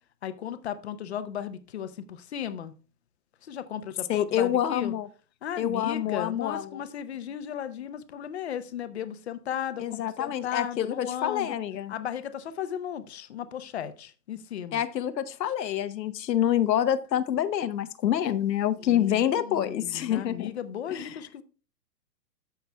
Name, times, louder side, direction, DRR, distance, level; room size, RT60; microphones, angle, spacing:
voice 1, 0.2-2.7 3.4-4.9 5.4-11.5 11.9-14.8 18.8-21.4, left 9 dB, 40° left, 0.7 m, -36 dB
voice 2, 4.1-5.1 5.6-6.8 9.8-11.9 14.7-20.5 20.9-21.2, left 10 dB, 85° left, 0.9 m, -27 dB
14.0 x 5.8 x 2.2 m
hypercardioid pair, 170°, 49 cm